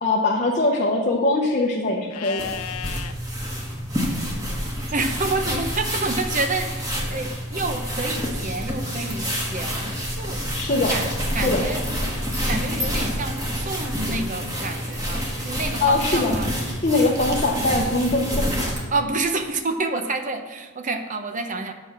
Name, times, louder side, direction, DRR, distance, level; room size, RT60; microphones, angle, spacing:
voice 1, 0.0-2.5 10.5-10.9 11.4-11.6 15.8-16.4 16.8-18.5, left 2 dB, 35° left, -1 dB, 0.8 m, -22 dB
Livestock farm animals working animals, 2.1-3.1 6.0-6.9, left 9 dB, 80° left, 0.6 m, -36 dB
sound 1, 2.4-18.9, equal, 15° right, 1.6 m, -28 dB
voice 2, 4.9-10.4 10.9-11.1 11.3-11.8 12.5-16.5 18.9-21.7, right 3 dB, 35° right, 7 dB, 0.7 m, -28 dB
7.9 x 6.1 x 7.4 m, 1.3 s
head